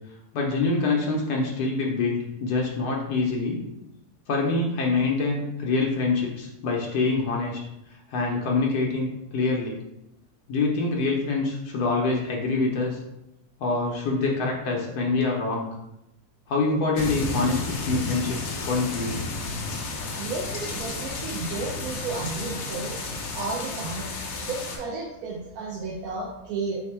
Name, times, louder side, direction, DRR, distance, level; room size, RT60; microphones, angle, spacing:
voice 1, 0.3-3.7 4.3-7.6 8.1-9.8 10.5-13.0 13.6-15.7 16.5-19.2, left 3 dB, 90° left, -1 dB, 1.3 m, -25 dB
sound 1, 16.9-24.8, left 3 dB, 60° left, 0.8 m, -32 dB
voice 2, 20.2-23.0 23.3-24.1 24.4-26.8, right 3 dB, 75° right, -3 dB, 1.1 m, -32 dB
4.2 x 2.1 x 4.3 m, 0.83 s
omnidirectional pair, 1.7 m